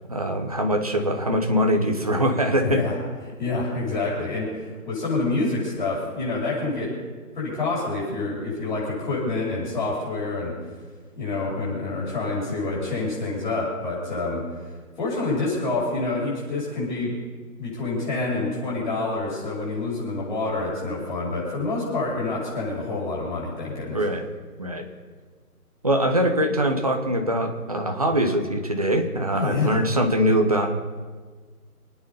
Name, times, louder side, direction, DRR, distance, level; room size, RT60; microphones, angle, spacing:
voice 1, 0.1-2.8 23.9-24.3 24.6-24.8 25.8-30.7, equal, 25° right, 3 dB, 1.1 m, -23 dB
voice 2, 2.6-2.9 3.4-4.5 4.8-6.9 7.3-10.5 11.1-14.4 15.0-17.2 17.6-24.0 29.3-29.8, left 3 dB, 30° left, -6 dB, 6.7 m, -27 dB
27.5 x 9.5 x 5.5 m, 1.5 s
hypercardioid pair, 175°, 46 cm